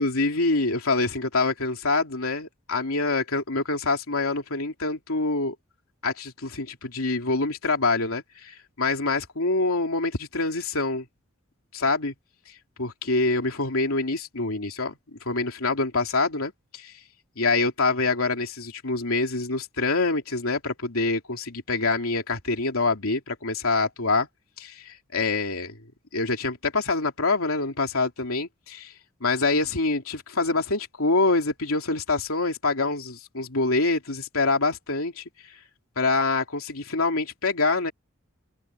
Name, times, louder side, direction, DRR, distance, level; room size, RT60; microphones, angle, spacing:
voice 1, 0.0-5.5 6.0-11.0 11.7-12.1 12.8-14.9 15.2-16.9 17.4-24.3 24.6-25.8 26.1-28.9 29.2-35.2 36.0-37.9, left 3 dB, 85° left, 2.9 m, -25 dB
head